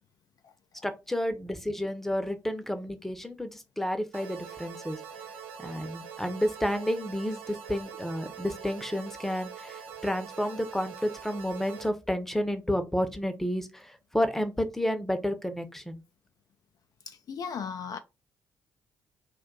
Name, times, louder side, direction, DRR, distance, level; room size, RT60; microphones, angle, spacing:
voice 1, 0.8-5.0 5.6-16.0, equal, 5° left, 0.7 m, -31 dB
sound 1, 4.1-11.9, right 7 dB, 75° right, 0.5 m, -44 dB
voice 2, 17.1-18.0, left 6 dB, 45° left, 0.3 m, -36 dB
2.5 x 2.3 x 3.7 m
figure-of-eight pair, 40°, 8 cm